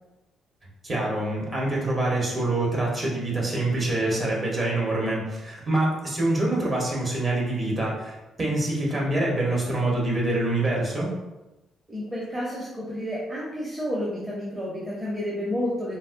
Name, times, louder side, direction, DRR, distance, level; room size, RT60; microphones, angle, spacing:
voice 1, 0.8-11.1, right 2 dB, 35° right, -3 dB, 1.2 m, -25 dB
voice 2, 11.9-16.0, equal, 20° right, -7 dB, 0.8 m, -30 dB
3.9 x 2.2 x 2.6 m, 1.0 s
cardioid pair, 90°, 0 cm